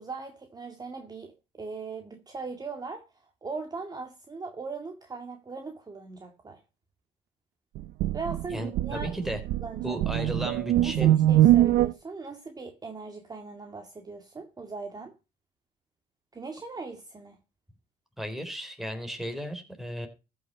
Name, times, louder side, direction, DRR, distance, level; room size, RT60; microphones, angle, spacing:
voice 1, 0.0-6.6 8.1-9.2 9.6-10.3 10.8-15.1 16.3-17.4, right 4 dB, 25° right, 2.0 m, -39 dB
sound 1, 7.8-11.9, right 13 dB, 80° right, 0.7 m, -23 dB
voice 2, 8.5-9.4 9.8-11.1 18.2-20.1, equal, ahead, 3.8 m, -35 dB
14.5 x 6.4 x 5.4 m
cardioid pair, 110°, 17 cm